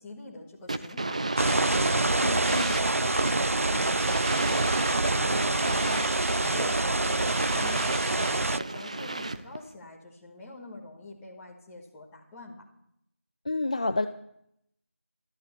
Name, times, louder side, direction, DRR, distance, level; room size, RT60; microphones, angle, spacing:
voice 1, 0.0-4.9 5.1-12.6, left 2 dB, 5° left, -5 dB, 1.4 m, -44 dB
sound 1, 0.7-9.6, right 2 dB, 30° right, 0.8 m, -31 dB
sound 2, 1.4-8.6, right 2 dB, 75° right, 0.5 m, -27 dB
voice 2, 2.2-2.7 13.5-14.1, left 2 dB, 30° left, 9 dB, 0.6 m, -29 dB
13.5 x 11.5 x 8.3 m, 0.74 s
figure-of-eight pair, 175°, 8 cm